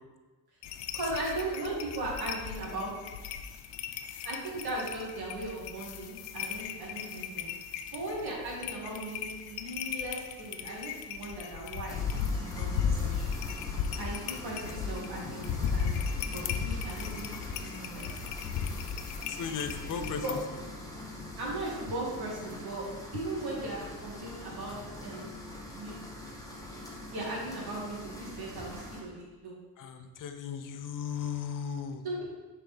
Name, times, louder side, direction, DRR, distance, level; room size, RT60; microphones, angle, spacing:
sound 1, 0.6-20.4, left 7 dB, 90° left, 0.5 m, -36 dB
voice 1, 0.9-2.9 4.2-7.5 7.9-13.4 14.0-16.0 16.3-18.2 20.2-20.3 21.4-22.8 23.1-25.4 25.7-26.1 27.1-29.5 32.0-32.2, right 2 dB, 60° right, -4 dB, 2.1 m, -38 dB
sound 2, 11.9-29.0, left 1 dB, 10° left, 1.2 m, -44 dB
voice 2, 19.3-20.4 29.8-32.0, left 7 dB, 50° left, 7 dB, 0.7 m, -36 dB
sound 3, 20.0-21.0, left 2 dB, 15° right, 1.8 m, -44 dB
6.6 x 4.7 x 3.4 m, 1.2 s
cardioid pair, 85°, 41 cm